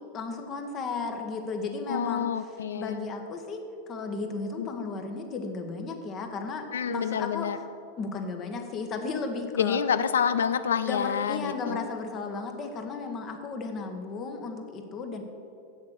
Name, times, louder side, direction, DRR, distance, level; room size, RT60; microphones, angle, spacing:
voice 1, 0.1-2.3 2.7-3.6 3.9-7.5 8.0-9.8 10.9-15.2, left 4 dB, 30° left, 4 dB, 1.4 m, -34 dB
voice 2, 1.9-3.0 4.6-4.7 6.7-7.6 9.6-11.8, left 7 dB, 65° left, 13 dB, 0.5 m, -28 dB
8.5 x 7.2 x 8.1 m, 2.6 s
figure-of-eight pair, 90°, 0 cm